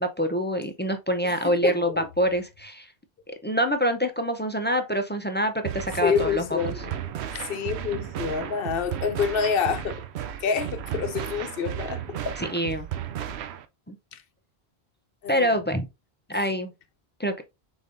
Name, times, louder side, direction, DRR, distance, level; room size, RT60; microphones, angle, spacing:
voice 1, 0.0-1.9 2.2-2.9 3.4-6.4 12.4-12.9 13.9-14.0 15.3-15.9 16.3-16.7 17.2-17.4, equal, 15° left, 0.4 m, -25 dB
voice 2, 1.2-2.1 6.0-7.0 7.3-10.0 10.4-12.4 14.1-14.2 15.2-15.6, left 6 dB, 70° left, 0.8 m, -28 dB
sound 1, 5.7-13.7, right 10 dB, 90° right, 0.8 m, -34 dB
5.2 x 3.9 x 2.5 m
omnidirectional pair, 1.1 m